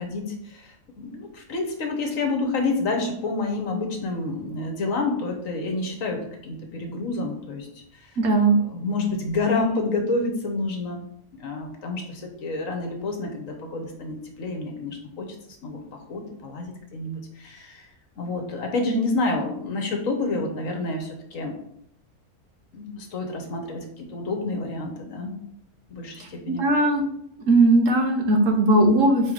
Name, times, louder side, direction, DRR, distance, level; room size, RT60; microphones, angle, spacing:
voice 1, 0.0-8.2 8.6-11.0 11.4-15.3 15.6-15.8 16.1-17.9 18.2-21.6 22.7-25.4 25.9-26.6, left 3 dB, 65° left, 3 dB, 1.4 m, -29 dB
voice 2, 8.2-8.5 26.2-27.0 27.5-29.3, right 2 dB, 65° right, 3 dB, 1.4 m, -19 dB
4.5 x 4.5 x 5.0 m, 0.71 s
omnidirectional pair, 1.5 m